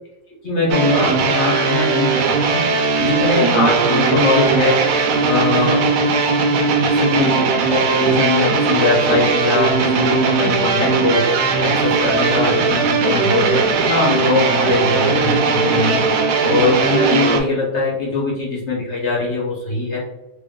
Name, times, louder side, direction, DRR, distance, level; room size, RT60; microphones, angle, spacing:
voice 1, 0.4-2.2 2.5-2.7 3.0-4.8 5.2-5.9 6.8-16.0 16.4-20.0, left 3 dB, 45° left, -4 dB, 1.1 m, -21 dB
sound 1, 0.7-17.4, right 4 dB, 70° right, 1.0 m, -18 dB
3.0 x 2.5 x 3.6 m, 0.94 s
omnidirectional pair, 1.8 m